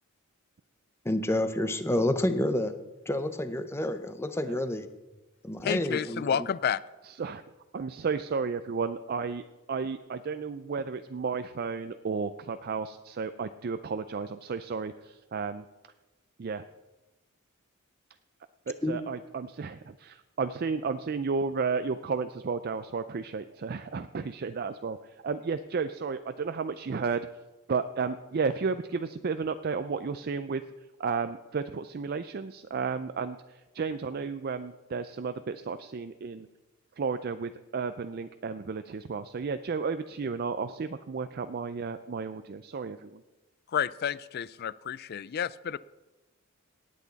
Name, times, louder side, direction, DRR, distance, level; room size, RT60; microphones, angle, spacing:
voice 1, 1.0-2.7 3.1-4.9 5.4-6.5 18.8-19.0, left 1 dB, 10° left, 9 dB, 0.6 m, -29 dB
voice 2, 5.6-6.8 43.7-45.8, left 8 dB, 45° left, 19 dB, 0.3 m, -30 dB
voice 3, 7.0-7.4 7.7-15.7 16.4-16.6 18.7-27.3 27.7-36.5 37.0-43.2, right 5 dB, 45° right, 10 dB, 0.4 m, -33 dB
18.0 x 8.4 x 4.0 m, 1.1 s
head